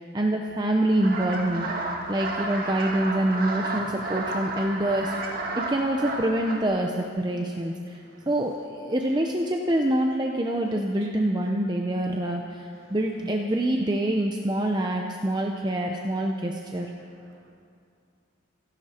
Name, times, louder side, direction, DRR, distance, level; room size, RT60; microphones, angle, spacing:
voice 1, 0.0-1.7 2.1-8.0 8.3-16.9, right 1 dB, 20° right, 2 dB, 0.7 m, -26 dB
sound 1, 0.9-6.6, right 2 dB, 45° right, 1.7 m, -32 dB
voice 2, 7.9-8.3 11.0-11.1 12.8-13.0 16.3-16.4 17.0-17.5, right 3 dB, 85° right, 1 dB, 2.3 m, -58 dB
27.0 x 11.0 x 4.4 m, 2.4 s
head